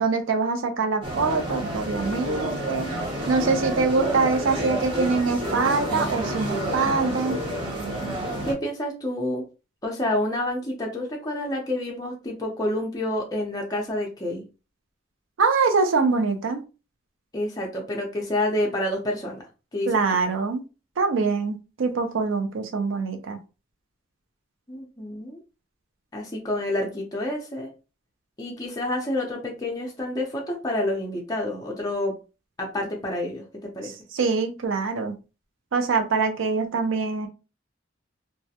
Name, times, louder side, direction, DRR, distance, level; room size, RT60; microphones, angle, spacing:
voice 1, 0.0-2.9 3.3-7.4 15.4-16.6 19.9-20.6 21.0-23.4 33.8-35.1 35.7-37.3, right 4 dB, 90° right, 5 dB, 0.5 m, -24 dB
sound 1, 1.0-8.5, right 1 dB, 25° right, 0.7 m, -29 dB
voice 2, 8.4-9.5 9.8-14.5 17.3-19.4 19.7-20.0 24.7-25.4 26.1-27.7 28.4-32.1 32.6-33.9, left 1 dB, 20° left, -1 dB, 0.5 m, -28 dB
2.3 x 2.1 x 2.7 m, 0.31 s
head